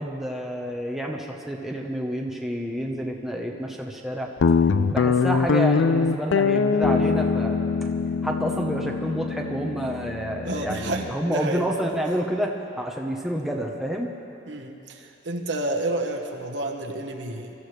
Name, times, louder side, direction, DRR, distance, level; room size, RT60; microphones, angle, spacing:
voice 1, 0.0-4.3 4.9-7.6 8.2-14.1, equal, ahead, -1 dB, 1.0 m, -29 dB
Guitar, 4.4-11.1, left 5 dB, 90° left, 0.4 m, -23 dB
voice 2, 10.4-11.7 14.5-17.5, right 2 dB, 70° right, 2 dB, 1.2 m, -30 dB
23.5 x 14.0 x 3.3 m, 2.9 s
head